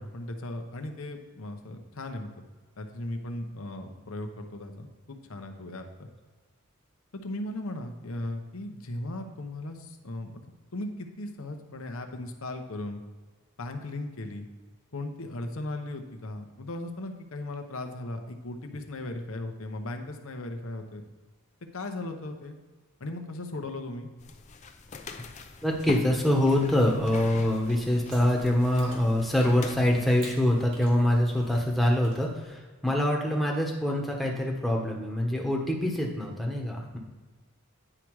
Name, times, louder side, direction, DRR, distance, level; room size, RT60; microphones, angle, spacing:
voice 1, 0.1-2.3 2.8-6.1 7.1-10.4 10.7-13.0 13.6-14.5 14.9-21.0 21.7-22.6 23.0-24.1, left 1 dB, 65° left, 5 dB, 0.9 m, -37 dB
sound 1, 24.2-32.0, left 3 dB, 35° left, 0.6 m, -44 dB
voice 2, 25.6-37.0, left 1 dB, ahead, -1 dB, 1.2 m, -25 dB
Chewing mastication, 26.4-32.5, right 1 dB, 55° right, 2.7 m, -50 dB
9.9 x 4.8 x 4.7 m, 1.4 s
head